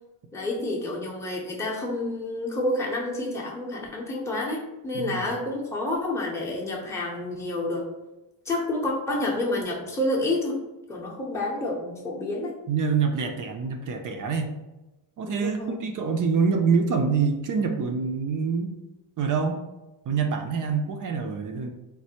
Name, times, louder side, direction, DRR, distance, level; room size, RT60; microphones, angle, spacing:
voice 1, 0.3-7.9 8.5-10.6 10.9-12.5 15.2-15.8, left 2 dB, 5° left, -3 dB, 0.6 m, -29 dB
voice 2, 4.9-5.4 12.7-14.5 15.2-18.8 19.2-19.6 20.1-21.7, right 5 dB, 45° right, 5 dB, 0.4 m, -26 dB
3.2 x 2.1 x 2.8 m, 1.0 s
cardioid pair, 85°, 49 cm